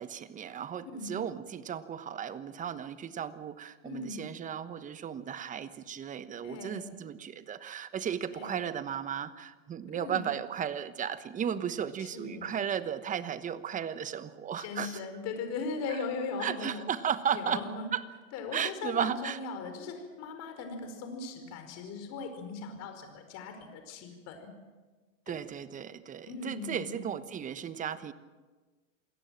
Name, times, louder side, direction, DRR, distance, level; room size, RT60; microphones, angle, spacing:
voice 1, 0.0-15.0 16.4-17.6 17.9-18.0 18.5-19.4 25.3-28.1, right 8 dB, 20° right, 13 dB, 1.1 m, -35 dB
voice 2, 3.8-4.2 6.4-6.8 8.3-8.7 9.9-10.2 12.0-12.5 14.6-16.9 17.3-17.9 18.3-24.5 25.3-25.5 26.3-27.0, left 4 dB, 40° left, 6 dB, 4.9 m, -39 dB
27.5 x 18.0 x 7.6 m, 1.3 s
hypercardioid pair, 120°, 39 cm